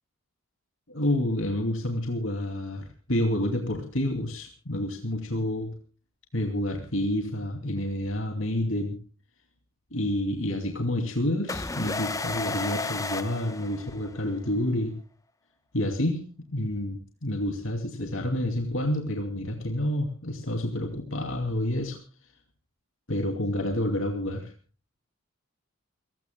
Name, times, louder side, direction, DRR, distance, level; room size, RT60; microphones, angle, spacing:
voice 1, 0.9-5.7 6.3-9.0 9.9-14.9 15.7-22.0 23.1-24.5, left 1 dB, 65° left, 4 dB, 2.6 m, -29 dB
sound 1, 11.5-14.3, left 3 dB, 15° left, 0.8 m, -32 dB
29.5 x 16.5 x 2.2 m, 0.37 s
head